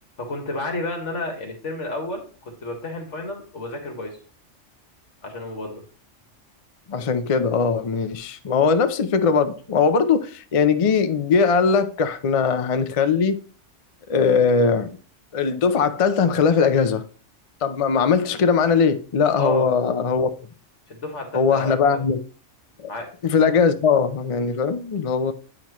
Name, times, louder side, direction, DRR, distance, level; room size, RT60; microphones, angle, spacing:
voice 1, 0.2-4.1 5.2-5.8 19.4-19.7 20.9-22.0 22.9-23.1, left 2 dB, 75° left, 1.9 m, -31 dB
voice 2, 6.9-13.4 14.1-14.9 15.3-17.0 17.6-20.3 21.3-22.2 22.8-22.9 23.2-25.3, left 5 dB, 45° left, 0.5 m, -20 dB
8.8 x 5.9 x 3.0 m
omnidirectional pair, 1.3 m